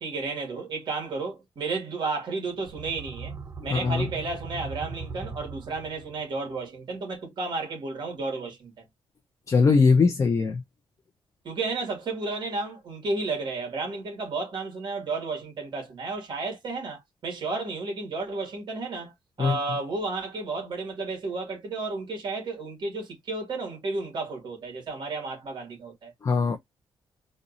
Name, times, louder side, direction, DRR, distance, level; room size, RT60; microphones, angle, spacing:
voice 1, 0.0-3.3 3.6-8.8 11.4-19.1 19.4-26.1, right 3 dB, 55° right, 2.1 m, -32 dB
sound 1, 2.6-6.3, right 4 dB, 30° right, 0.6 m, -39 dB
voice 2, 3.6-4.1 9.5-10.6 19.4-19.6 26.2-26.6, left 4 dB, 35° left, 0.7 m, -21 dB
4.2 x 2.6 x 2.5 m
cardioid pair, 135°, 9 cm